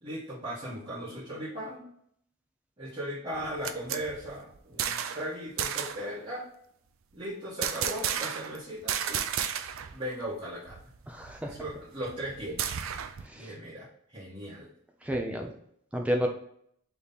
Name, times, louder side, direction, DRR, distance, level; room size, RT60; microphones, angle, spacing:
voice 1, 0.0-1.8 2.8-6.5 7.1-9.2 9.9-10.8 11.4-12.6 13.3-14.7, equal, 25° right, -11 dB, 1.4 m, -37 dB
sound 1, 3.3-5.3 5.6-6.1 7.6-8.6 8.9-9.9 10.2-10.3 10.7-13.3, right 9 dB, 60° right, 0.4 m, -33 dB
voice 2, 11.1-11.5 13.3-13.5 15.0-15.5 15.9-16.3, equal, 5° right, 2 dB, 0.6 m, -30 dB
3.5 x 3.1 x 4.1 m, 0.68 s
head